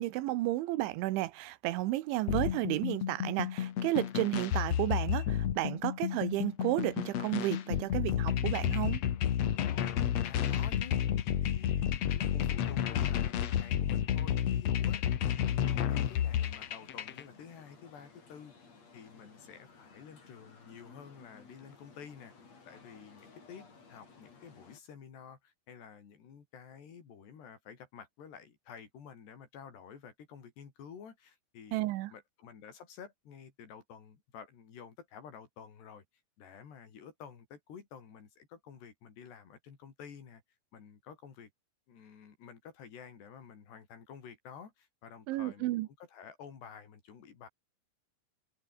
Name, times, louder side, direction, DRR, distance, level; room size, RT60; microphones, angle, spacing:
voice 1, 0.0-9.0 31.7-32.1 45.3-45.9, right 17 dB, 90° right, 3.4 m, -32 dB
sound 1, 2.3-17.2, left 10 dB, 80° left, 1.4 m, -31 dB
voice 2, 9.9-11.0 11.4-11.9 12.2-15.0 15.5-18.5 18.9-22.3 22.7-31.8 32.1-36.0 36.4-40.4 40.7-41.5 41.9-45.8 46.0-47.5, left 7 dB, 65° left, 5.9 m, -51 dB
sound 2, 15.9-24.8, left 4 dB, 35° left, 5.7 m, -57 dB
omnidirectional pair, 5.3 m